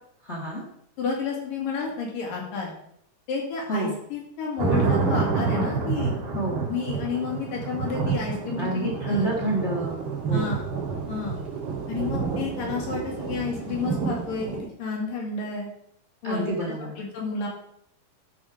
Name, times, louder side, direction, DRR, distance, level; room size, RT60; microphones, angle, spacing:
voice 1, 0.2-0.6 3.7-3.9 6.3-6.7 8.6-10.5 16.2-16.9, right 2 dB, 45° left, -1 dB, 0.8 m, -29 dB
voice 2, 1.0-2.7 3.3-6.1 6.7-9.3 10.3-10.6 11.1-11.4 11.9-15.7 16.2-17.5, left 5 dB, 65° left, -2 dB, 4.0 m, -31 dB
sound 1, 4.6-14.6, right 5 dB, 55° right, 4.4 m, -28 dB
13.0 x 6.3 x 5.0 m, 0.69 s
omnidirectional pair, 4.3 m